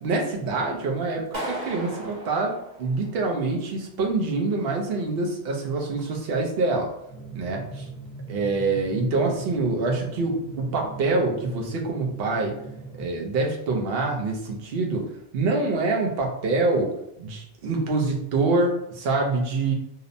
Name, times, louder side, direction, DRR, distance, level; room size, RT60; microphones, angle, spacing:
voice 1, 0.0-6.9 7.4-7.8 8.3-12.5 13.0-15.1 15.3-16.9 17.2-19.7, right 3 dB, 70° right, 1 dB, 0.8 m, -25 dB
Clapping, 1.3-3.4, right 1 dB, 45° right, 1.0 m, -35 dB
Drum, 7.1-13.1, right 3 dB, 5° left, 0.9 m, -40 dB
2.8 x 2.0 x 2.5 m, 0.77 s
omnidirectional pair, 1.1 m